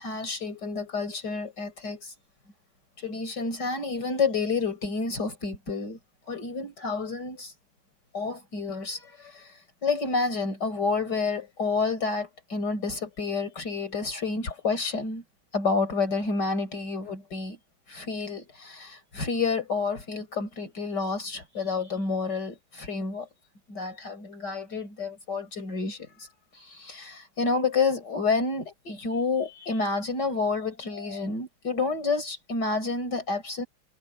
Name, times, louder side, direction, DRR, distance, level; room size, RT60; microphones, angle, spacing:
voice 1, 0.0-2.2 3.0-6.0 6.3-7.6 8.1-15.2 15.5-17.6 17.9-23.3 23.7-33.7, left 4 dB, 55° left, 5.4 m, -29 dB
omnidirectional pair, 2.2 m